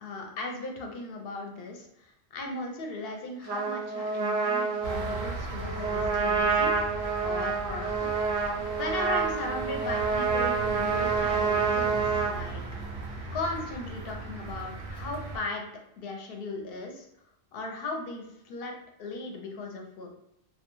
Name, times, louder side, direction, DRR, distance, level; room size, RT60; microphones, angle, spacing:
voice 1, 0.0-8.1 8.8-12.6 13.3-15.7 16.0-17.1 17.5-18.7 19.0-20.1, left 2 dB, 65° left, 1 dB, 0.7 m, -37 dB
Trumpet, 3.5-12.3, right 5 dB, 60° right, 0.6 m, -28 dB
sound 1, 4.8-15.4, right 2 dB, 80° right, 0.9 m, -38 dB
2.2 x 2.2 x 2.9 m, 0.81 s
omnidirectional pair, 1.1 m